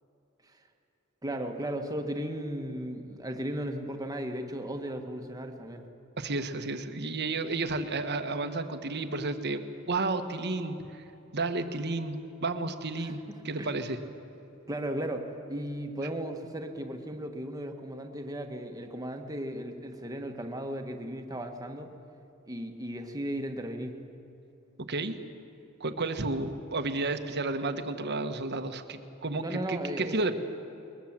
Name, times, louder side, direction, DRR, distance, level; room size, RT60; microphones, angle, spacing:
voice 1, 1.2-5.8 13.0-13.1 13.6-13.7 14.7-21.9 22.5-23.9 29.4-30.3, right 1 dB, 15° right, 4 dB, 1.5 m, -36 dB
voice 2, 6.2-11.0 11.3-13.2 13.4-14.0 24.9-25.1 25.8-30.3, right 3 dB, 50° right, 8 dB, 1.3 m, -32 dB
21.5 x 21.0 x 7.5 m, 2.9 s
head